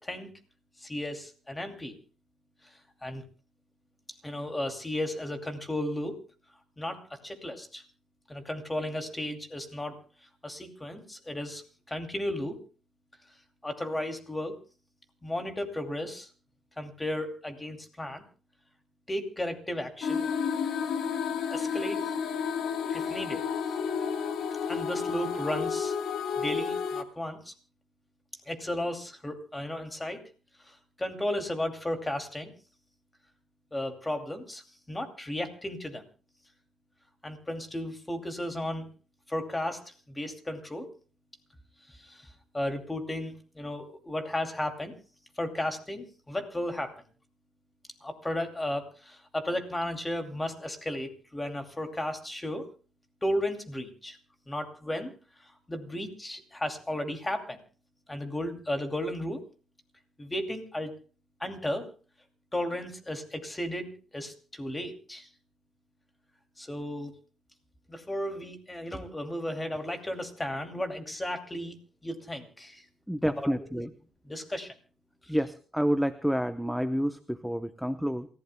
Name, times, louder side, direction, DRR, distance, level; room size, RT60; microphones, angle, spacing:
voice 1, 0.8-1.9 3.0-3.2 4.2-6.2 6.8-7.8 8.3-10.0 10.4-11.6 11.9-12.6 13.6-14.6 15.2-16.3 16.8-18.2 19.1-20.3 21.5-22.0 22.9-23.5 24.7-26.0 26.4-27.5 28.5-30.2 30.6-32.5 33.7-36.0 37.2-38.9 39.3-40.9 41.9-44.9 45.4-47.0 48.0-52.7 53.2-54.2 54.5-55.1 55.7-57.6 58.1-59.4 60.2-61.0 61.4-61.9 62.5-65.3 66.6-67.2 67.9-71.8 72.0-72.8 73.3-73.5 74.2-74.7 75.3-75.4, left 1 dB, 15° left, 5 dB, 2.6 m, -34 dB
sound 1, 20.0-27.0, left 6 dB, 75° left, 1.6 m, -31 dB
voice 2, 73.1-73.9 75.3-78.3, equal, ahead, 10 dB, 0.8 m, -29 dB
28.0 x 15.5 x 2.2 m, 0.38 s
cardioid pair, 90°, 0 cm